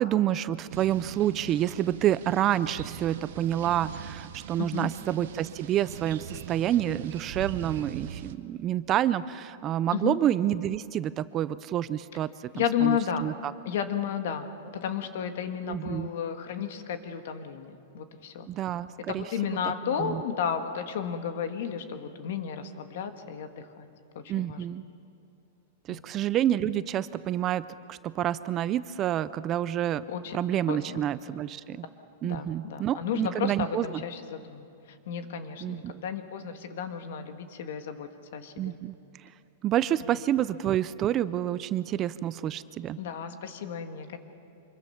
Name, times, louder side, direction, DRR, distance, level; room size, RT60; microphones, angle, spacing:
voice 1, 0.0-13.5 15.7-16.1 18.5-19.2 20.0-20.2 24.3-24.8 25.9-30.0 30.3-31.9 32.2-34.0 35.6-36.0 38.6-39.3 39.6-43.0, right 11 dB, 25° right, 16 dB, 0.4 m, -28 dB
sound 1, 0.7-8.3, right 10 dB, 65° right, 0.9 m, -41 dB
voice 2, 4.6-4.9 9.9-10.2 12.5-13.3 13.7-14.5 14.7-18.5 19.1-23.9 24.2-24.6 25.9-26.0 30.1-30.4 30.7-31.0 32.2-38.8 43.0-44.2, left 8 dB, 60° left, 7 dB, 1.8 m, -33 dB
25.5 x 22.5 x 5.8 m, 2.5 s
supercardioid pair, 160°, 0 cm